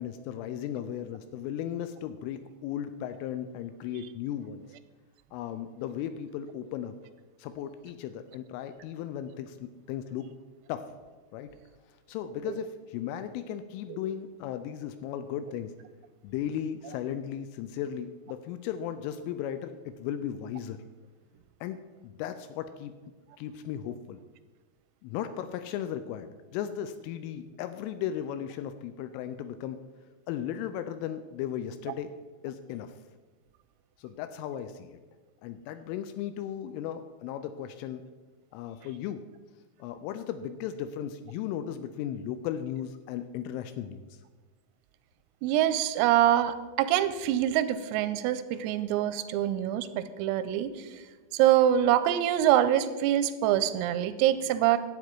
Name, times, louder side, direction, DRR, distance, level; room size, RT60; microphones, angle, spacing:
voice 1, 0.0-4.7 5.3-7.0 7.4-10.3 10.7-10.9 11.3-11.6 12.1-15.7 16.2-20.8 21.6-21.8 22.0-22.9 23.4-24.2 25.0-29.8 30.3-32.1 32.4-32.9 34.0-35.0 35.4-38.1 38.5-39.2 39.8-44.2, left 10 dB, 85° left, 10 dB, 2.9 m, -36 dB
voice 2, 45.4-50.9 51.3-54.8, right 11 dB, 85° right, 12 dB, 3.2 m, -25 dB
11.5 x 8.3 x 4.5 m, 1.3 s
omnidirectional pair, 5.9 m